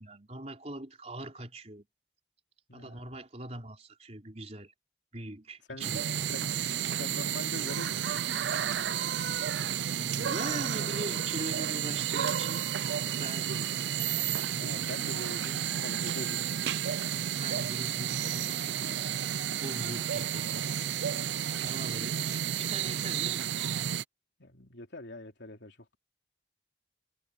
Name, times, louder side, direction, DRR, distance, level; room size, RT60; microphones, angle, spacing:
voice 1, 0.0-1.9 2.7-4.7 5.1-6.4 9.9-13.7 16.9-19.1 19.6-23.5, right 1 dB, 40° right, 3.9 m, -42 dB
voice 2, 2.7-3.1 5.7-6.0 6.3-6.6 7.0-8.1 14.5-16.4 21.7-22.2 24.4-26.0, left 1 dB, 85° left, 3.5 m, -44 dB
sound 1, 5.8-24.0, right 9 dB, 85° right, 0.5 m, -31 dB
head